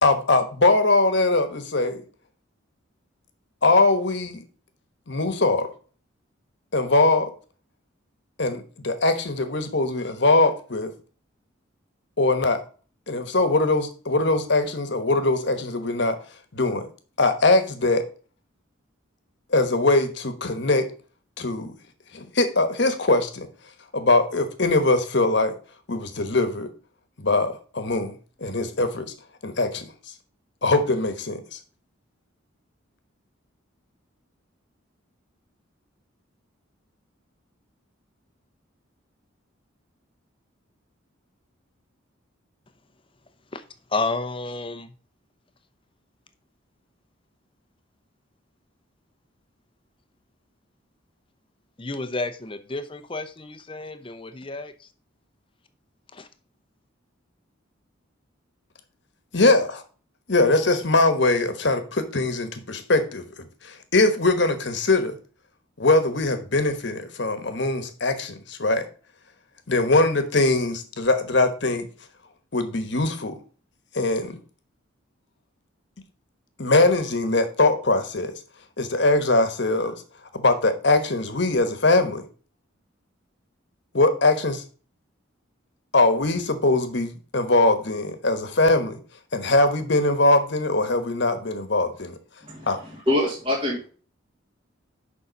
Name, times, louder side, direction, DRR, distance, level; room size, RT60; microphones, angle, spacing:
voice 1, 0.0-2.0 3.6-4.4 5.1-5.7 6.7-7.3 8.4-10.9 12.2-12.6 13.1-16.2 16.5-16.9 17.2-18.0 19.5-20.8 21.4-21.7 22.1-23.5 23.9-25.5 25.9-26.7 27.2-28.2 28.4-29.1 29.4-29.9 30.6-31.6 59.3-59.8 60.3-63.2 63.6-65.2 65.8-68.8 69.7-71.9 72.5-73.4 73.9-74.4 76.6-78.3 78.8-79.9 80.3-82.2 83.9-84.6 85.9-89.0 89.3-92.1 92.7-92.8, left 2 dB, 55° left, 8 dB, 1.2 m, -21 dB
voice 2, 43.9-44.9 51.8-54.9 56.1-56.3, left 3 dB, 25° left, 9 dB, 0.7 m, -31 dB
voice 3, 92.4-93.9, left 1 dB, 25° right, -4 dB, 2.1 m, -25 dB
6.9 x 5.4 x 5.1 m, 0.39 s
head